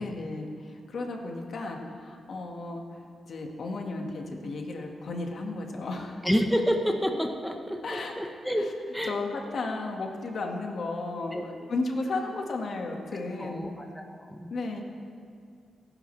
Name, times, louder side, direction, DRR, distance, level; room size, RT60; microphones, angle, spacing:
voice 1, 0.0-6.3 7.8-8.3 9.1-13.7 14.5-14.8, left 3 dB, 65° left, 2 dB, 1.8 m, -34 dB
voice 2, 6.2-8.7 8.9-9.1 11.3-11.7 13.4-14.5, equal, ahead, 3 dB, 1.2 m, -29 dB
27.5 x 10.5 x 3.4 m, 2.3 s
cardioid pair, 90°, 0 cm